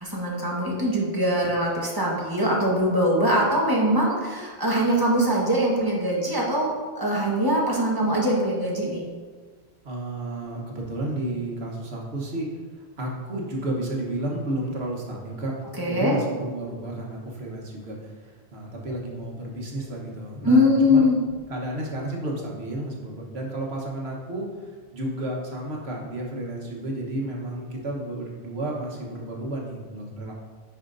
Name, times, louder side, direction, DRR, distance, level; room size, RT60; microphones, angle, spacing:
voice 1, 0.0-6.7 6.9-9.0 15.8-16.2 20.4-21.2, equal, 20° right, -4 dB, 1.3 m, -22 dB
voice 2, 9.8-21.1 21.5-30.3, right 1 dB, 80° right, -1 dB, 1.5 m, -32 dB
10.0 x 5.0 x 2.6 m, 1.5 s
omnidirectional pair, 1.0 m